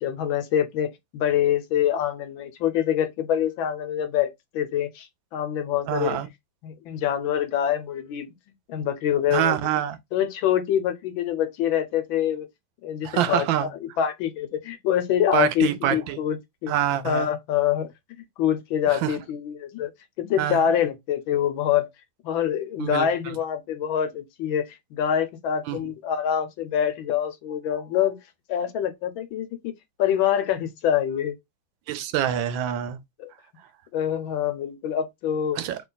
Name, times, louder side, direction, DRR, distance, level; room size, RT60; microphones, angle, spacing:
voice 1, 0.0-5.1 5.3-6.2 6.6-8.3 8.7-9.6 10.1-12.5 12.8-13.7 14.0-16.7 17.0-17.9 18.2-19.9 20.2-21.9 22.2-28.2 28.5-29.7 30.0-31.4 33.2-33.3 33.9-35.6, left 9 dB, 80° left, 1.5 m, -25 dB
voice 2, 5.9-6.3 9.3-10.0 13.0-13.7 15.3-16.2 16.7-17.3 18.9-19.2 20.4-20.7 22.8-23.4 25.7-25.9 31.9-33.0 35.6-35.8, right 11 dB, 80° right, 1.3 m, -26 dB
3.1 x 2.9 x 3.9 m
omnidirectional pair, 2.2 m